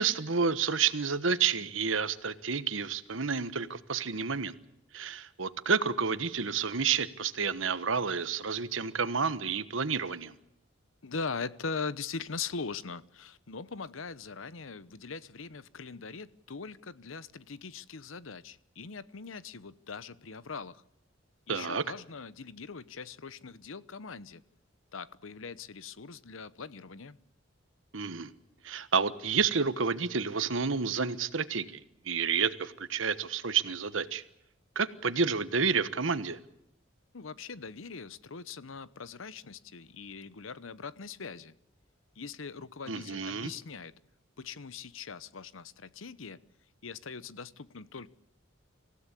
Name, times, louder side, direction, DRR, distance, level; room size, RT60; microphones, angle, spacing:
voice 1, 0.0-4.5 4.9-10.3 21.5-21.8 27.9-28.3 28.6-34.2 34.7-36.4 42.9-43.5, right 5 dB, 75° right, 13 dB, 1.3 m, -30 dB
voice 2, 11.0-20.8 21.5-24.4 24.9-27.2 37.1-41.5 42.2-43.9 44.4-46.4 46.8-48.1, left 5 dB, 85° left, 17 dB, 0.9 m, -41 dB
26.5 x 16.0 x 8.4 m, 0.80 s
head